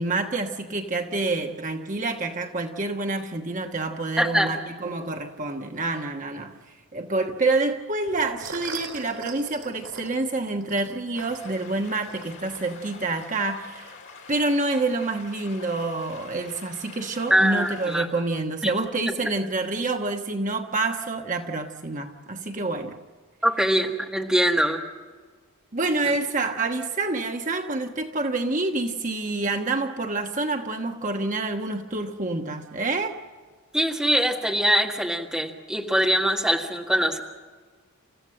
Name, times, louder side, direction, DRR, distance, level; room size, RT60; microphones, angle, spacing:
voice 1, 0.0-6.6 6.9-13.9 14.3-23.0 25.7-33.2, right 2 dB, 35° right, 4 dB, 1.3 m, -27 dB
voice 2, 4.2-4.5 17.3-18.1 18.6-18.7 23.4-24.8 33.7-37.2, equal, 5° right, 1 dB, 1.7 m, -23 dB
sound 1, 8.1-13.2, right 5 dB, 85° right, 3.8 m, -41 dB
sound 2, 11.1-18.0, left 4 dB, 55° left, 4.1 m, -46 dB
29.0 x 15.0 x 7.6 m, 1.4 s
head